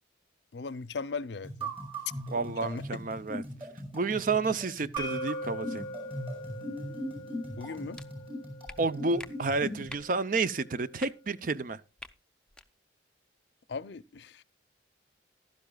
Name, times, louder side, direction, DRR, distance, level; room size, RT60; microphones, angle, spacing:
voice 1, 0.5-1.7 2.4-3.0 7.6-8.0 13.7-14.4, left 4 dB, 65° left, 0.5 m, -38 dB
sound 1, 1.4-9.9, equal, 30° right, 5.3 m, -39 dB
voice 2, 2.3-3.4 3.9-5.8 8.8-11.8, right 3 dB, 45° right, 0.5 m, -30 dB
sound 2, 5.0-10.8, equal, 85° right, 3.7 m, -42 dB
sound 3, 7.9-8.1 8.7-8.8 9.2-9.3 9.9-10.1 11.0-11.1 12.0-12.1 12.5-12.7, left 2 dB, 5° left, 0.5 m, -44 dB
15.0 x 12.0 x 2.3 m
head